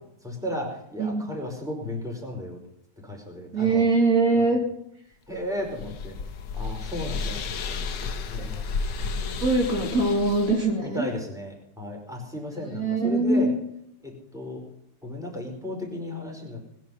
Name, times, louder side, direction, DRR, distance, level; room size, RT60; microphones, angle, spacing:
voice 1, 0.2-2.6 3.0-3.9 5.3-6.1 6.5-7.9 8.3-8.6 10.8-13.5 14.0-14.6 15.0-16.6, left 1 dB, ahead, 0 dB, 5.1 m, -34 dB
voice 2, 1.0-1.3 3.5-4.6 8.4-11.1 12.7-13.5, right 3 dB, 55° right, 0 dB, 3.1 m, -23 dB
sound 1, 5.3-10.7, left 4 dB, 90° left, 1.8 m, -32 dB
21.0 x 11.0 x 5.7 m, 0.76 s
omnidirectional pair, 1.8 m